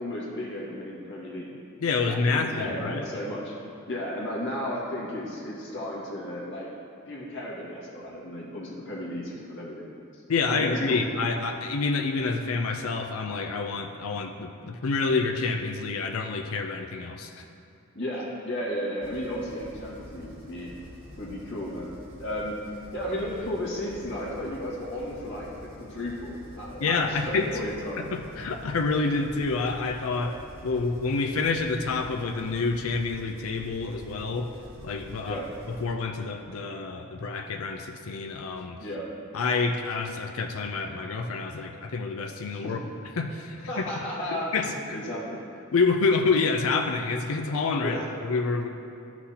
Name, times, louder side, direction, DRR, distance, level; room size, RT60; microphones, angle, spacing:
voice 1, 0.0-1.5 2.0-3.5 3.9-6.7 7.1-9.9 10.6-11.0 17.9-20.7 21.2-21.9 22.2-22.5 22.9-25.5 25.8-28.0 35.2-35.5 38.8-39.1 42.6-42.7 43.7-45.4 47.8-48.1, left 1 dB, 60° left, -5 dB, 1.9 m, -34 dB
voice 2, 1.8-3.0 10.3-17.3 26.8-27.6 28.0-34.5 34.8-35.4 35.8-38.8 39.3-42.8 43.2-43.8 44.3-45.0 45.7-48.7, left 4 dB, 75° left, 4 dB, 0.5 m, -28 dB
sound 1, 19.0-35.9, equal, 65° right, 1.5 m, -47 dB
13.0 x 6.0 x 2.9 m, 2.6 s
head